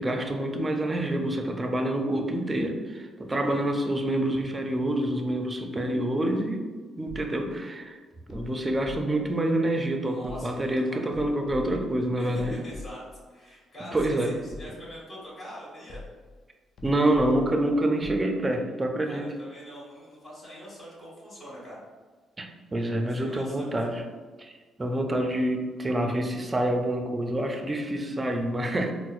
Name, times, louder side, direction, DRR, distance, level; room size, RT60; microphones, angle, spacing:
voice 1, 0.0-6.6 7.0-8.0 8.3-12.6 13.9-14.3 16.8-19.3 22.4-24.0 24.4-24.5 24.8-28.9, right 1 dB, 20° right, 4 dB, 0.4 m, -27 dB
sound 1, 7.1-7.6 8.3-9.3 10.2-10.8 11.1-13.2 13.9-15.0 15.9-16.4 16.8-18.3, left 3 dB, 65° left, 0.4 m, -44 dB
voice 2, 10.0-11.1 12.2-13.0 13.3-16.0 19.1-21.8 23.0-23.8, equal, 45° left, -6 dB, 1.4 m, -44 dB
4.2 x 2.0 x 2.4 m, 1.4 s
cardioid pair, 90°, 0 cm